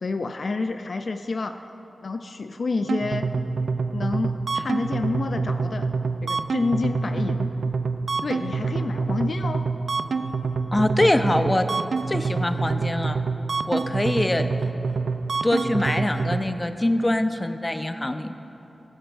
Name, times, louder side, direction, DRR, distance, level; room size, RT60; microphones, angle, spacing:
voice 1, 0.0-1.6 2.0-3.3 3.9-5.9 6.2-7.5 8.2-9.6, left 3 dB, 70° left, 7 dB, 0.4 m, -28 dB
sound 1, 2.9-16.4, right 4 dB, 85° right, 0.4 m, -26 dB
voice 2, 10.7-11.7 12.1-13.2 13.7-14.5 15.4-18.3, left 1 dB, 25° left, 8 dB, 0.6 m, -23 dB
21.0 x 7.9 x 2.6 m, 3.0 s
cardioid pair, 45°, 0 cm